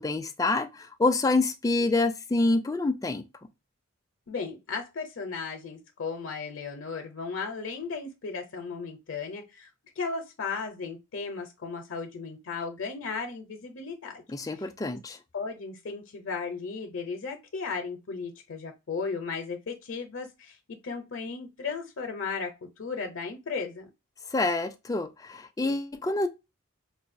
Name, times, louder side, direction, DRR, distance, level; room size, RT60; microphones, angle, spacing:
voice 1, 0.0-3.2 14.3-15.2 24.3-26.3, left 2 dB, 15° left, 0.3 m, -27 dB
voice 2, 4.3-9.7 10.0-14.2 14.5-14.7 15.3-23.9, left 4 dB, 65° left, 0.6 m, -35 dB
4.7 x 2.2 x 2.5 m
head